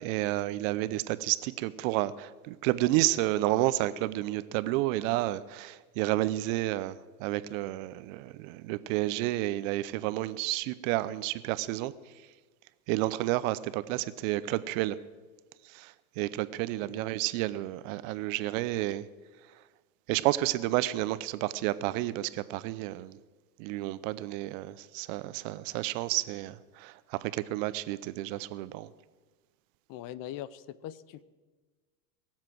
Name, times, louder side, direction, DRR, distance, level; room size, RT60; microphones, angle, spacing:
voice 1, 0.0-11.9 12.9-15.0 15.7-19.0 20.1-23.2 23.6-28.9, right 16 dB, 60° right, 0.8 m, -30 dB
voice 2, 16.8-17.1 29.9-31.2, left 12 dB, 45° left, 0.7 m, -42 dB
22.5 x 7.5 x 6.1 m
hypercardioid pair, 105°, 45 cm